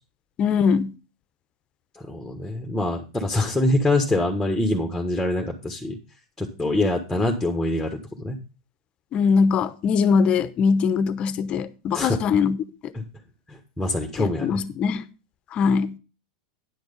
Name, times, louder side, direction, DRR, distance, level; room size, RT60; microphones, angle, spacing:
voice 1, 0.4-0.9 9.1-12.6 14.2-15.0 15.5-15.9, left 5 dB, 35° left, 0.9 m, -21 dB
voice 2, 1.9-6.0 6.4-8.4 11.9-12.2 12.9-13.0 13.5-14.6, left 1 dB, 5° left, 1.5 m, -25 dB
10.0 x 6.2 x 5.3 m
hypercardioid pair, 110°, 3 cm